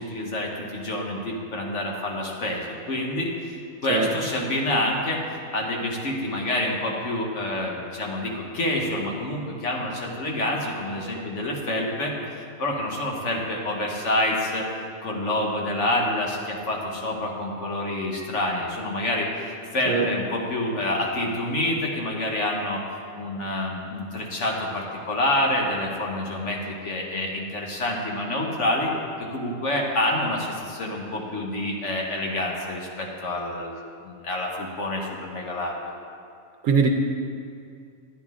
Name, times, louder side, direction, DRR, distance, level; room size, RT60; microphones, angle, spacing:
voice 1, 0.0-3.3 3.8-5.2 5.5-12.1 12.6-14.7 15.0-19.3 19.7-22.8 23.2-28.9 29.2-33.8 34.0-35.8, left 1 dB, 55° left, -1 dB, 1.5 m, -27 dB
voice 2, 3.9-4.1 19.9-20.1 36.6-36.9, right 5 dB, 85° right, 4 dB, 1.1 m, -20 dB
10.0 x 10.0 x 3.7 m, 2.3 s
omnidirectional pair, 1.5 m